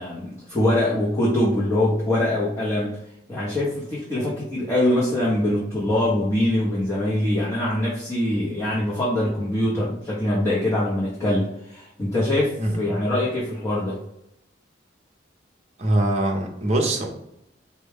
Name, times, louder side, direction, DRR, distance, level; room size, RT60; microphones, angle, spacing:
voice 1, 0.0-3.0 3.3-14.0, left 1 dB, 15° left, -7 dB, 0.8 m, -23 dB
voice 2, 15.8-17.1, right 1 dB, 35° right, 1 dB, 0.7 m, -22 dB
4.4 x 2.2 x 3.4 m, 0.81 s
head